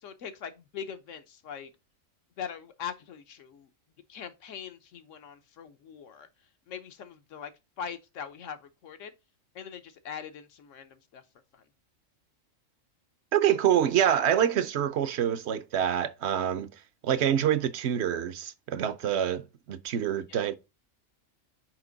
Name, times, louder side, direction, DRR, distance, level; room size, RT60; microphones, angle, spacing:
voice 1, 0.0-1.7 2.4-3.7 4.1-6.3 6.7-7.5 7.8-9.1 9.5-11.2 11.5-11.6 20.3-20.5, left 7 dB, 70° left, 1.2 m, -41 dB
voice 2, 13.3-16.7 17.0-20.6, right 10 dB, 60° right, 0.9 m, -26 dB
6.0 x 5.2 x 3.9 m
omnidirectional pair, 1.4 m